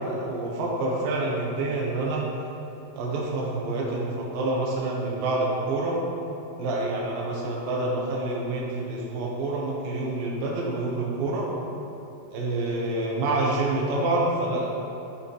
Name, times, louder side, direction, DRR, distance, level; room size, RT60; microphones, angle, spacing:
voice 1, 0.0-2.3 3.0-6.0 6.6-11.5 12.3-14.7, right 2 dB, 75° right, -4 dB, 2.8 m, -27 dB
11.5 x 7.7 x 3.3 m, 2.8 s
omnidirectional pair, 4.2 m